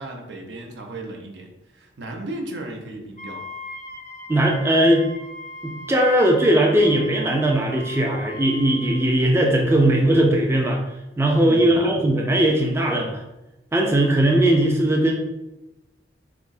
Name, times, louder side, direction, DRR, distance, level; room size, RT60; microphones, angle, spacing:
voice 1, 0.0-3.4 11.4-12.0, right 2 dB, 75° right, 2 dB, 0.7 m, -35 dB
Wind instrument woodwind instrument, 3.2-9.1, left 1 dB, 45° left, 0.5 m, -39 dB
voice 2, 4.3-5.0 5.6-10.8 11.2-13.2 13.7-15.1, right 1 dB, 15° right, 0 dB, 0.4 m, -19 dB
5.9 x 2.0 x 2.6 m, 0.96 s
head